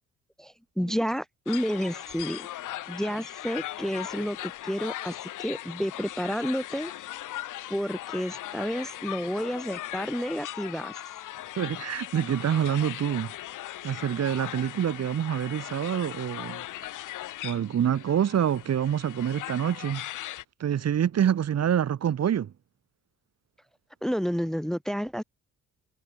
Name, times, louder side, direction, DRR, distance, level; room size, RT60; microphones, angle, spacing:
voice 1, 0.4-2.5 2.9-6.9 7.7-10.9 24.0-25.2, equal, ahead, 1.3 m, -30 dB
sound 1, 1.5-20.4, left 14 dB, 85° left, 6.8 m, -39 dB
voice 2, 11.6-13.3 13.8-16.6 17.4-20.1 20.6-22.5, right 9 dB, 60° right, 2.8 m, -26 dB
cardioid pair, 90°, 30 cm